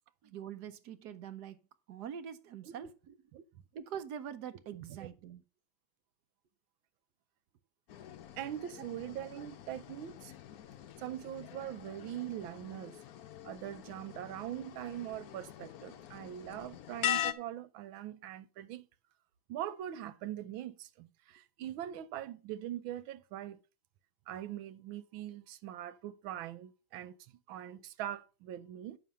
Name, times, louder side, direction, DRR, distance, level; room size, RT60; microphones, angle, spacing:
voice 1, 0.2-1.6 1.9-3.2 3.7-5.4, right 8 dB, 65° right, 1.2 m, -44 dB
sound 1, 7.9-17.3, left 11 dB, 65° left, 1.0 m, -42 dB
voice 2, 8.3-10.3 11.0-13.0 13.4-18.9 19.5-23.6 24.3-29.0, right 12 dB, 90° right, 1.5 m, -42 dB
9.2 x 6.5 x 5.4 m
omnidirectional pair, 2.1 m